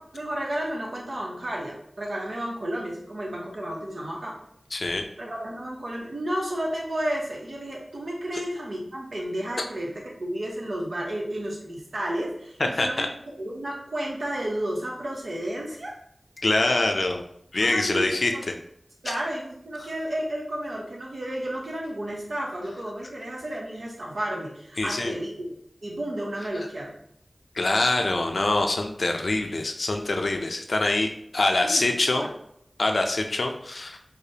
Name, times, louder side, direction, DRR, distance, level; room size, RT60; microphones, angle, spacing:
voice 1, 0.0-4.4 5.2-13.1 13.4-15.9 17.6-18.4 19.0-25.5 25.8-27.0 31.6-32.3, right 1 dB, 80° right, -3 dB, 0.8 m, -32 dB
voice 2, 4.7-5.0 12.6-13.1 16.4-17.2 17.5-18.6 19.8-19.9 24.8-25.1 27.5-32.3 32.8-34.0, left 2 dB, 80° left, 4 dB, 0.4 m, -24 dB
4.8 x 2.1 x 2.7 m, 0.72 s
wide cardioid pair, 50°, 0 cm